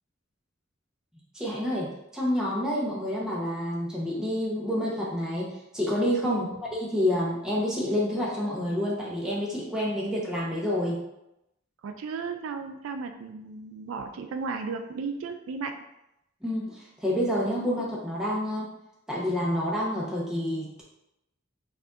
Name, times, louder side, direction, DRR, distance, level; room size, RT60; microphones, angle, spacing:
voice 1, 1.3-6.5 6.7-11.0 16.4-18.7 19.1-20.8, left 1 dB, 5° right, -6 dB, 0.8 m, -28 dB
voice 2, 11.8-15.8, right 4 dB, 80° right, 6 dB, 0.3 m, -35 dB
4.8 x 2.6 x 2.4 m, 0.86 s
head